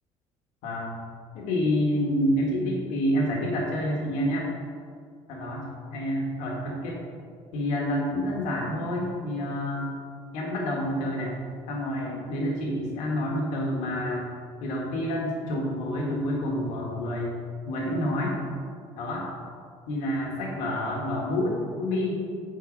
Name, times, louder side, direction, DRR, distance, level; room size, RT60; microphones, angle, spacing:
voice 1, 0.6-1.0 1.3-4.5 5.3-5.6 5.9-7.0 7.5-9.9 10.3-11.4 11.7-14.3 14.6-17.3 17.6-18.4 19.0-19.2 19.9-22.2, left 1 dB, 85° left, -2 dB, 1.5 m, -28 dB
9.1 x 3.9 x 5.1 m, 2.2 s
cardioid pair, 170°, 12 cm